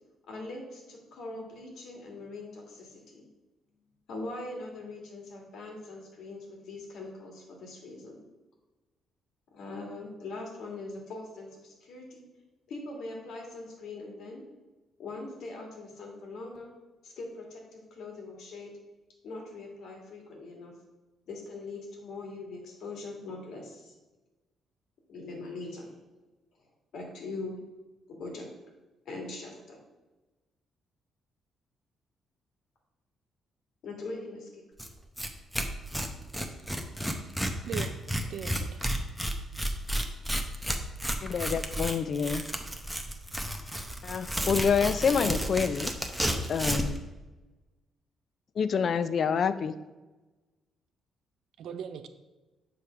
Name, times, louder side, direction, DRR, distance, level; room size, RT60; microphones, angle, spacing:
voice 1, 0.3-3.3 4.1-8.2 9.5-12.2 12.7-14.4 15.0-16.7 17.0-18.7 19.2-20.8 21.3-23.9 25.1-25.9 26.9-27.6 28.1-28.5 29.0-29.8 33.8-34.6, left 2 dB, 75° left, 0 dB, 1.7 m, -41 dB
Tearing, 34.8-34.9 35.2-35.3 35.5-47.0, equal, 5° right, 0.7 m, -32 dB
voice 2, 37.6-38.0 38.3-38.9 40.6-40.8 51.6-52.1, right 8 dB, 75° right, 10 dB, 0.5 m, -39 dB
voice 3, 41.2-42.4 44.1-45.9 46.5-47.0 48.6-49.7, left 6 dB, 55° left, 13 dB, 0.4 m, -27 dB
6.9 x 3.2 x 5.6 m, 1.2 s
cardioid pair, 90°, 0 cm